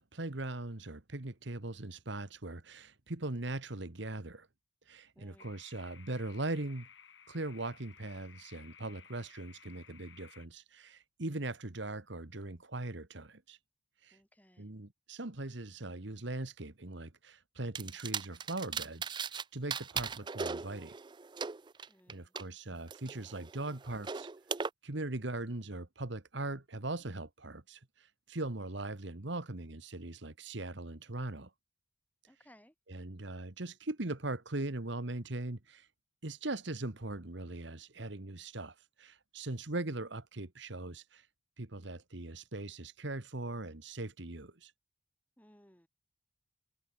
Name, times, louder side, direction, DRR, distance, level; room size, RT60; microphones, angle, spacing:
voice 1, 0.0-4.5 4.9-6.9 7.3-13.6 14.0-14.2 14.6-20.9 22.1-24.3 24.8-31.5 32.9-35.9 36.2-41.3 41.6-44.7, right 2 dB, 60° right, 1.6 m, -40 dB
voice 2, 5.1-5.6 14.1-14.7 21.9-22.3 32.3-32.7 45.4-45.9, equal, 10° left, 6.4 m, -62 dB
sound 1, 5.4-10.5, left 7 dB, 60° left, 7.7 m, -57 dB
sound 2, 17.7-19.4 19.7-22.4 22.9-24.7, right 6 dB, 20° right, 0.4 m, -38 dB
head